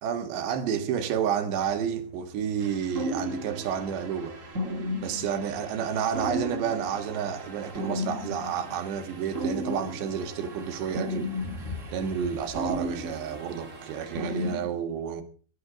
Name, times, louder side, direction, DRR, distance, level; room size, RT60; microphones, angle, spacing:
voice 1, 0.0-4.3 5.0-11.3 11.9-15.2, right 8 dB, 75° right, 3.8 m, -30 dB
sound 1, 1.7-14.6, left 2 dB, 15° left, 4.9 m, -47 dB
sound 2, 2.6-14.6, equal, 50° right, 0.9 m, -35 dB
21.0 x 10.5 x 4.9 m
omnidirectional pair, 5.0 m